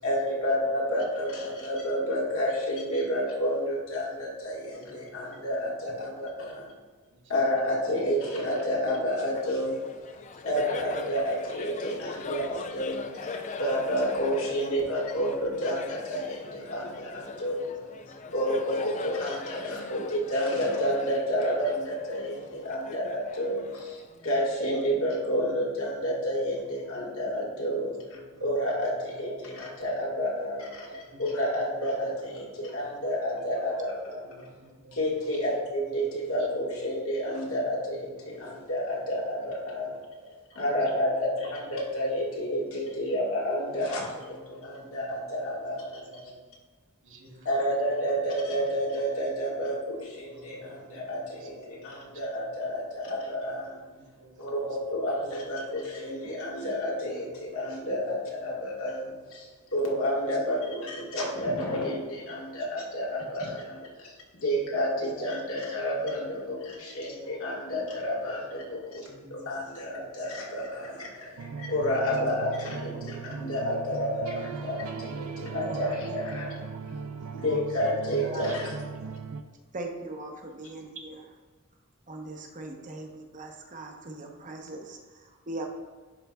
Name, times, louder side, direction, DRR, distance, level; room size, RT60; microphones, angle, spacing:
voice 1, 0.0-6.7 7.3-10.2 10.4-13.1 13.6-17.7 18.3-30.9 31.2-34.3 34.9-40.0 40.5-45.9 47.4-53.8 54.4-64.1 64.4-69.0 69.3-76.5 77.3-78.7, equal, 80° left, -4 dB, 1.7 m, -30 dB
voice 2, 0.6-1.5 4.4-5.1 5.9-6.5 7.8-8.3 11.6-11.9 12.8-13.1 14.7-14.8 17.9-18.0 18.8-19.4 23.8-24.0 27.7-27.9 29.2-29.4 30.2-31.0 31.5-31.6 32.3-32.8 33.3-34.5 39.7-40.6 41.0-41.6 42.4-42.5 44.7-44.8 45.4-46.3 47.3-47.5 51.4-51.7 52.6-53.2 54.9-55.7 56.0-56.4 60.2-60.8 63.0-63.3 63.6-63.9 64.9-65.4 65.7-65.8 66.2-67.1 67.4-68.2 68.5-68.8 69.8-70.1 70.6-71.5 72.1-72.4 72.7-73.0 73.9-74.6 75.5-76.4 76.7-76.8 77.4-79.0 79.7-81.3 82.1-85.7, right 2 dB, 35° right, 2 dB, 0.8 m, -44 dB
voice 3, 4.7-5.4 7.1-7.3 10.3-10.6 13.2-13.3 17.7-18.3 25.9-26.0 26.4-27.0 27.9-28.5 28.8-29.0 29.4-29.5 29.8-29.9 31.1-31.2 31.5-31.6 32.2-32.3 32.7-32.8 33.2-33.3 34.3-35.0 35.3-35.4 37.4-37.8 38.4-38.5 41.0-41.3 42.0-42.1 42.4-42.5 42.9-43.0 44.1-45.2 45.6-45.7 46.1-46.2 47.0-47.5 49.2-49.3 50.2-52.5 53.4-53.7 54.2-54.7 55.1-55.2 55.7-56.1 56.9-57.6 58.0-58.1 59.0-59.1 67.9-68.0 69.0-69.9 71.2-71.4 77.1-77.4, right 1 dB, 60° right, -1 dB, 1.2 m, -55 dB
Laughter, 9.3-24.3, left 4 dB, 35° left, 0.4 m, -41 dB
sound 1, 71.4-79.4, right 5 dB, 80° right, 0.4 m, -38 dB
11.0 x 3.9 x 2.3 m, 1.4 s
head